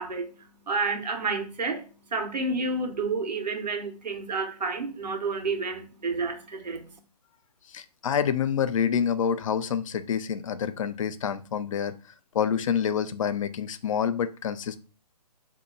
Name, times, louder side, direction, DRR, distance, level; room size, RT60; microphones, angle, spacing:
voice 1, 0.0-1.8 2.1-6.8, right 3 dB, 85° right, 1.0 m, -30 dB
voice 2, 7.7-11.9 12.3-14.8, left 8 dB, 50° left, 0.4 m, -27 dB
2.7 x 2.2 x 3.8 m
hypercardioid pair, 155°, 21 cm